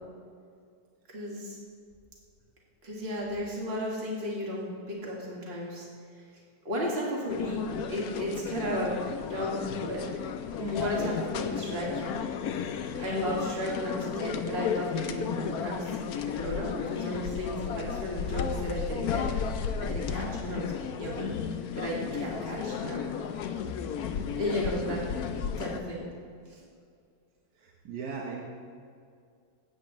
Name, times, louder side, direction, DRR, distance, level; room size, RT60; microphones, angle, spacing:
voice 1, 1.1-1.6 2.8-5.9 6.6-9.0 9.2-10.1 10.6-11.9 13.0-16.0 16.3-19.3 19.8-20.7 21.0-21.3 21.7-23.0 24.4-25.0 25.6-26.1 26.5-26.7, equal, 35° right, -4 dB, 2.1 m, -34 dB
sound 1, 7.3-25.8, left 7 dB, 70° left, 1.0 m, -34 dB
voice 2, 27.6-28.4, right 5 dB, 65° right, -2 dB, 1.6 m, -38 dB
15.0 x 8.7 x 3.1 m, 2.2 s
omnidirectional pair, 1.9 m